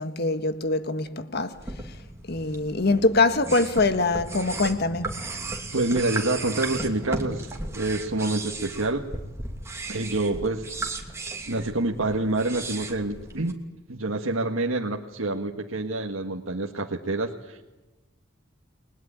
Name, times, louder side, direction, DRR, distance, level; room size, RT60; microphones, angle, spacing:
voice 1, 0.0-1.6 2.3-5.2, left 3 dB, 50° left, 1.6 m, -24 dB
sound 1, 1.5-13.5, right 2 dB, 15° right, 2.7 m, -36 dB
voice 2, 5.5-9.1 9.9-10.7 11.5-13.6 13.9-17.6, right 2 dB, 85° right, 1.7 m, -27 dB
30.0 x 21.0 x 8.9 m
head